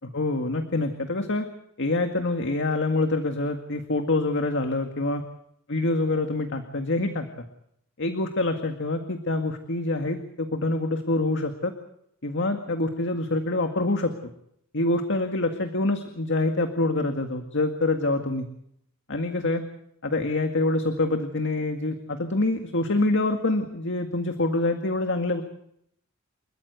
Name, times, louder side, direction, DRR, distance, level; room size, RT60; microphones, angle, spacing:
voice 1, 0.1-1.5 1.8-5.2 5.7-7.3 8.0-11.7 12.2-14.1 14.7-18.5 19.1-19.6 20.0-25.4, left 2 dB, 60° left, 5 dB, 2.0 m, -26 dB
30.0 x 14.5 x 8.3 m, 0.72 s
head